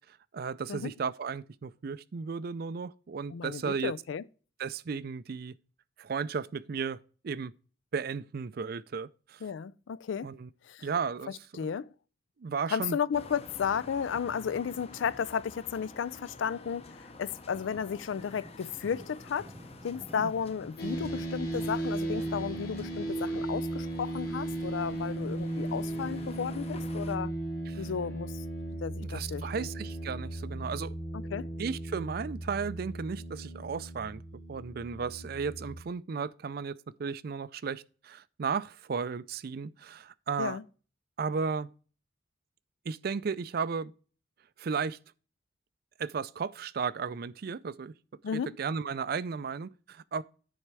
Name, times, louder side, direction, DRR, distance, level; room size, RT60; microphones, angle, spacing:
voice 1, 0.1-3.9 4.6-5.5 6.0-7.0 7.2-7.5 7.9-9.5 10.2-10.5 10.8-11.5 12.4-13.0 20.2-20.3 27.7-27.9 29.0-31.0 31.6-40.6 41.2-41.7 42.8-43.9 44.6-45.0 46.0-47.9 48.3-50.2, right 5 dB, 55° right, 0.4 m, -34 dB
voice 2, 3.3-4.2 9.4-10.3 10.7-10.9 11.6-11.9 12.7-19.5 19.8-27.3 27.8-28.3 28.8-29.7 31.1-31.5 40.4-40.6 48.2-48.5, left 7 dB, 80° left, 0.4 m, -33 dB
sound 1, 13.1-27.2, left 2 dB, 35° left, 0.8 m, -50 dB
sound 2, 17.5-23.5, right 1 dB, 15° right, 0.8 m, -50 dB
sound 3, 20.8-35.8, right 1 dB, 55° left, 2.6 m, -36 dB
9.9 x 4.2 x 4.7 m
head